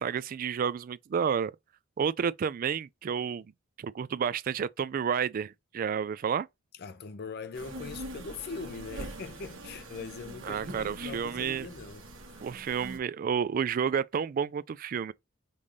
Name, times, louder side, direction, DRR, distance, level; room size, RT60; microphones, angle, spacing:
voice 1, 0.0-1.5 2.0-3.5 3.8-6.5 10.5-11.7 12.4-15.1, right 7 dB, 45° right, 0.3 m, -30 dB
voice 2, 6.7-12.4, left 4 dB, 55° left, 0.5 m, -42 dB
sound 1, 7.5-13.0, right 1 dB, 80° right, 1.3 m, -43 dB
5.3 x 2.6 x 3.1 m
head